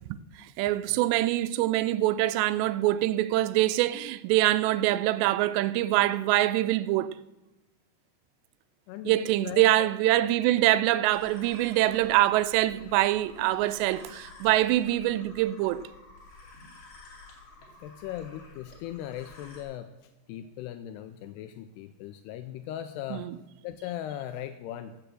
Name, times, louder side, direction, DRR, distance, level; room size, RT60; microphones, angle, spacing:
voice 1, 0.6-7.1 9.1-15.9 23.1-23.4, right 15 dB, 90° right, 2.8 m, -24 dB
voice 2, 8.9-9.9 17.8-19.9 20.3-23.3 23.6-24.9, left 11 dB, 85° left, 2.6 m, -38 dB
sound 1, 11.0-19.6, left 3 dB, 40° left, 3.1 m, -51 dB
15.0 x 6.9 x 7.6 m
omnidirectional pair, 4.9 m